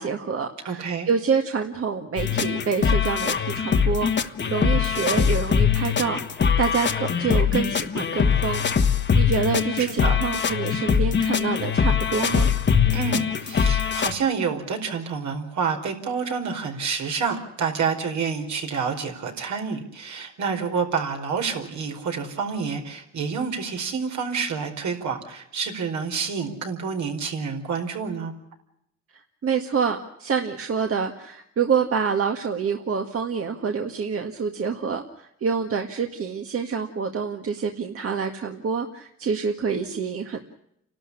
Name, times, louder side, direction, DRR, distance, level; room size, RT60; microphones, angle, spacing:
voice 1, 0.0-6.2 6.6-12.5 29.1-40.4, right 6 dB, 50° right, 4 dB, 1.9 m, -27 dB
voice 2, 0.6-1.1 9.8-10.2 12.9-28.3, right 5 dB, 70° right, 3 dB, 4.8 m, -28 dB
sound 1, 2.2-14.1, left 6 dB, 35° left, 1.4 m, -22 dB
30.0 x 12.5 x 10.0 m, 0.79 s
cardioid pair, 90°, 30 cm